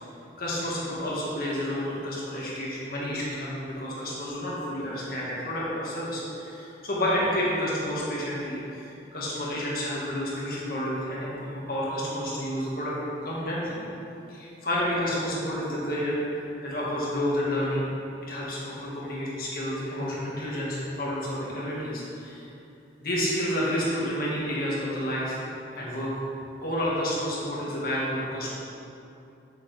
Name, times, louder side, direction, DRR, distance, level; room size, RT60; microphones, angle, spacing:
voice 1, 0.4-11.3 11.7-12.9 13.2-13.8 14.3-17.9 18.2-22.5 23.0-25.4 25.7-26.1 26.6-28.5, equal, 50° left, -6 dB, 1.9 m, -30 dB
8.2 x 7.2 x 3.5 m, 2.8 s
head